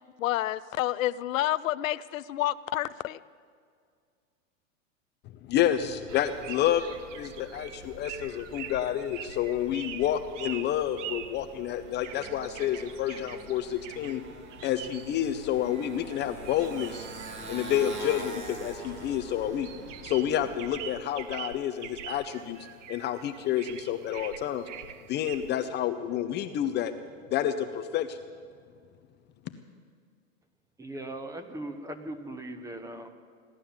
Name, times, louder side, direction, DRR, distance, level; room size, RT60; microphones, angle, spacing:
voice 1, 0.2-3.2, left 14 dB, 80° left, 16 dB, 0.6 m, -29 dB
voice 2, 5.3-6.8 7.1-14.2 14.6-17.1 17.5-19.7 20.0-22.6 22.9-24.6 25.1-26.9 27.3-28.2, left 11 dB, 25° left, 9 dB, 0.6 m, -29 dB
Motorcycle, 5.5-20.9, right 3 dB, 30° right, 2.2 m, -45 dB
sound 1, 6.1-25.7, right 10 dB, 65° right, 1.0 m, -45 dB
voice 3, 30.8-33.1, right 1 dB, 10° right, 8 dB, 1.0 m, -39 dB
17.0 x 11.0 x 7.3 m, 2.1 s
hypercardioid pair, 125°, 39 cm